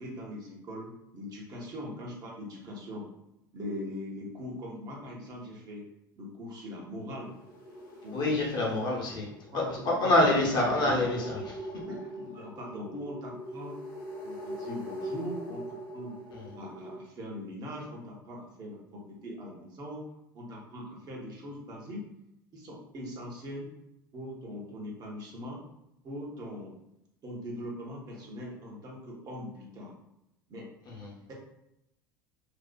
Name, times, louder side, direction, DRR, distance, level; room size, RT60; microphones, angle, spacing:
voice 1, 0.0-3.1 3.5-5.9 6.2-7.3 8.0-8.3 9.5-10.3 11.9-13.8 14.2-16.2 16.6-20.0 20.3-22.1 22.5-23.7 24.1-25.6 26.0-26.8 27.2-30.0 30.5-30.7 31.3-31.4, equal, 35° right, -3 dB, 0.8 m, -41 dB
sound 1, 7.1-17.0, equal, 80° left, 0.8 m, -42 dB
voice 2, 8.1-9.3 9.5-11.6 31.0-31.1, left 2 dB, 40° left, -2 dB, 0.8 m, -26 dB
2.6 x 2.3 x 2.2 m, 0.83 s
figure-of-eight pair, 75°, 11 cm